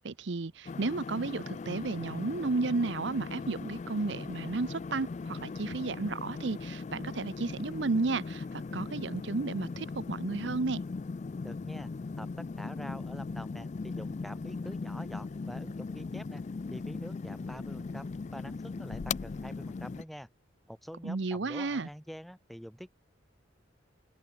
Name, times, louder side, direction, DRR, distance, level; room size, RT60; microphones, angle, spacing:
voice 1, 0.0-10.8 21.0-21.9, right 3 dB, 70° right, 0.7 m, -33 dB
sound 1, 0.7-20.0, left 4 dB, 40° left, 0.3 m, -39 dB
voice 2, 11.4-11.9 12.2-16.4 16.7-20.3 20.7-22.9, equal, ahead, 2.5 m, -46 dB
open air
head